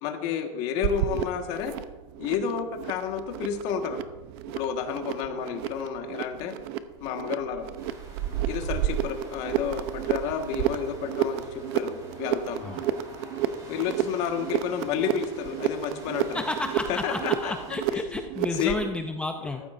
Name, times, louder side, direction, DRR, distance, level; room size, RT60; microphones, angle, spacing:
voice 1, 0.0-1.7 2.2-4.0 4.5-6.5 7.0-7.7 8.4-12.7 13.7-16.4 16.9-17.5 17.9-18.2 18.5-18.8, left 7 dB, 45° left, 4 dB, 1.5 m, -31 dB
sound 1, 0.8-18.8, right 11 dB, 50° right, 0.6 m, -31 dB
sound 2, 7.8-17.8, equal, 20° right, 4.0 m, -46 dB
voice 2, 16.3-19.6, left 2 dB, 5° left, 5 dB, 0.4 m, -32 dB
14.5 x 12.0 x 2.6 m, 1.1 s
supercardioid pair, 155°, 16 cm